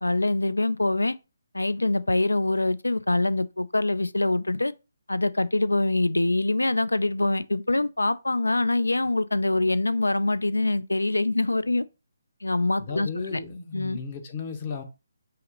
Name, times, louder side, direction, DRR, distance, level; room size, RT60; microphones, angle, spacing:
voice 1, 0.0-1.1 1.5-4.7 5.1-11.8 12.4-13.4 13.7-14.0, left 2 dB, 80° left, 0.3 m, -24 dB
voice 2, 12.8-14.8, left 5 dB, 30° left, 0.8 m, -34 dB
5.6 x 2.0 x 3.8 m
figure-of-eight pair, 145°, 0 cm